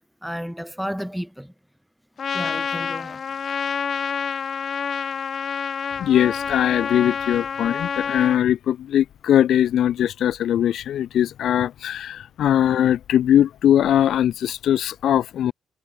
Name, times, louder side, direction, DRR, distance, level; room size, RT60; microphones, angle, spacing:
voice 1, 0.2-1.5 2.3-3.2, equal, ahead, 7.6 m, -32 dB
Trumpet, 2.2-8.4, left 6 dB, 50° left, 1.9 m, -28 dB
voice 2, 6.0-15.5, left 10 dB, 70° left, 1.5 m, -20 dB
cardioid pair, 90°, 0 cm